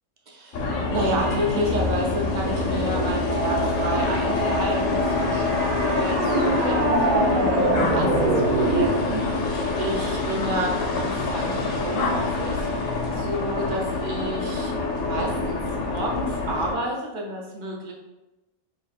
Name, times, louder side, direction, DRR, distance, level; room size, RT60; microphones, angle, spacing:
voice 1, 0.3-6.8 7.1-9.2 9.8-14.7 15.0-17.9, right 1 dB, 50° right, -2 dB, 0.5 m, -30 dB
sound 1, 0.5-16.7, left 3 dB, 70° left, 1.0 m, -26 dB
sound 2, 2.4-9.0, right 2 dB, 85° right, 1.2 m, -25 dB
3.0 x 2.4 x 4.0 m, 1.0 s
omnidirectional pair, 1.5 m